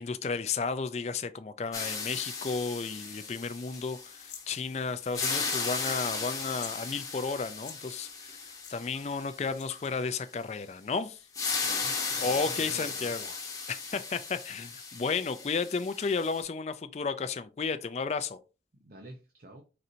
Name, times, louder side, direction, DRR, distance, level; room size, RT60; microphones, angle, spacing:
voice 1, 0.0-11.2 12.2-13.3 13.7-18.4, left 4 dB, 35° left, 0.3 m, -33 dB
sound 1, 1.7-4.7 5.0-9.8 11.3-16.4, left 4 dB, 20° left, 0.8 m, -36 dB
sound 2, 4.2-4.5 5.4-5.8 6.0-6.1 6.4-6.8 7.5-7.8 8.6-8.7 9.5-9.9, left 9 dB, 70° left, 0.9 m, -46 dB
voice 2, 11.6-13.1 18.7-19.6, right 1 dB, 50° right, 0.6 m, -48 dB
4.3 x 3.9 x 2.6 m
head